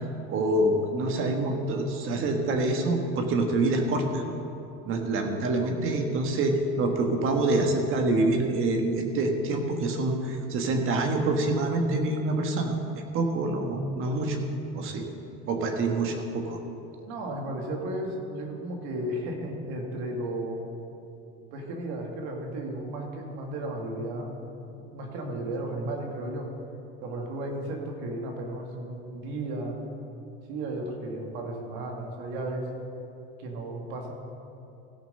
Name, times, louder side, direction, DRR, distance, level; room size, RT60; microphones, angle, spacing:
voice 1, 0.3-4.2 4.9-12.8 13.1-14.4 14.7-15.1 15.5-16.6, right 2 dB, 45° right, 4 dB, 1.5 m, -26 dB
voice 2, 17.1-20.6 21.5-24.4 24.7-26.5 27.0-29.8 30.5-32.7 33.4-34.1, right 1 dB, 70° right, 1 dB, 2.2 m, -34 dB
16.0 x 6.0 x 5.5 m, 2.8 s
supercardioid pair, 135°, 30 cm